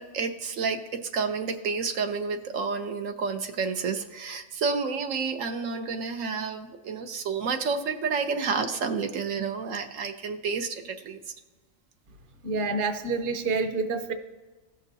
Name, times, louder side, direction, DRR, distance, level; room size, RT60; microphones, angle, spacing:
voice 1, 0.0-11.2, right 5 dB, 85° right, 6 dB, 1.2 m, -30 dB
voice 2, 12.4-14.1, right 3 dB, 45° right, 6 dB, 0.9 m, -28 dB
16.0 x 6.4 x 2.7 m, 1.2 s
omnidirectional pair, 1.3 m